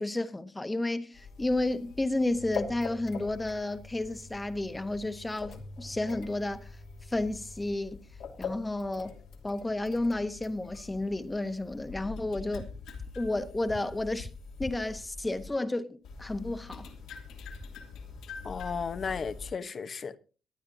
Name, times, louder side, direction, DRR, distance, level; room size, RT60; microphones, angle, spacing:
voice 1, 0.0-6.7 7.1-8.0 8.4-9.1 9.4-12.7 13.1-14.3 14.6-16.9, left 2 dB, 15° left, 1.2 m, -31 dB
sound 1, 1.1-15.5 16.0-19.5, left 4 dB, 85° left, 2.8 m, -44 dB
voice 2, 18.4-20.2, left 5 dB, 45° left, 1.1 m, -34 dB
22.5 x 9.4 x 2.8 m
cardioid pair, 90°, 0 cm